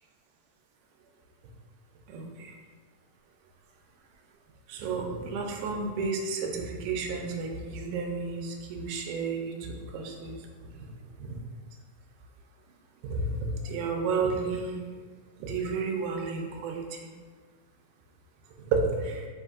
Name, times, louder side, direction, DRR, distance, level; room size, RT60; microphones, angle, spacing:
voice 1, 4.7-9.5 9.9-10.3 13.1-13.4 13.7-14.8 15.4-16.7 18.7-18.8 19.0-19.2, right 4 dB, 80° right, 1 dB, 1.9 m, -31 dB
5.1 x 3.5 x 2.4 m, 1.5 s
omnidirectional pair, 3.8 m